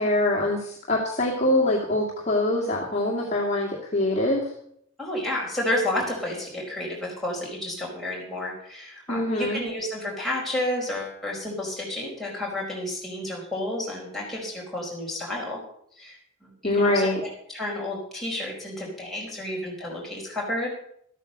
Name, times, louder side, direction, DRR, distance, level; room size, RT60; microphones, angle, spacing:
voice 1, 0.0-4.5 9.1-9.7 16.6-17.2, left 1 dB, 30° left, -4 dB, 1.9 m, -24 dB
voice 2, 5.0-15.6 16.0-17.1 17.5-20.7, left 1 dB, ahead, -5 dB, 4.8 m, -31 dB
13.5 x 9.0 x 6.6 m, 0.69 s
head